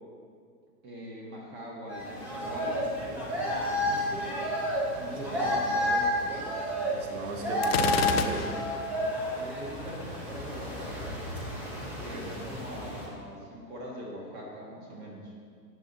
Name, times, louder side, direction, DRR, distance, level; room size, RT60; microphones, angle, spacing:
voice 1, 0.8-4.3 4.9-6.5 9.3-11.1 12.0-15.3, right 1 dB, 20° right, -2 dB, 1.4 m, -42 dB
sound 1, 1.9-13.1, equal, 5° right, 0.5 m, -31 dB
voice 2, 5.1-5.5 6.9-8.5 12.1-12.3, right 2 dB, 65° right, 1 dB, 2.2 m, -37 dB
Gunshot gunfire, 7.6-8.9, left 7 dB, 40° left, 0.6 m, -29 dB
12.0 x 8.3 x 4.0 m, 2.2 s
hypercardioid pair, 160°, 47 cm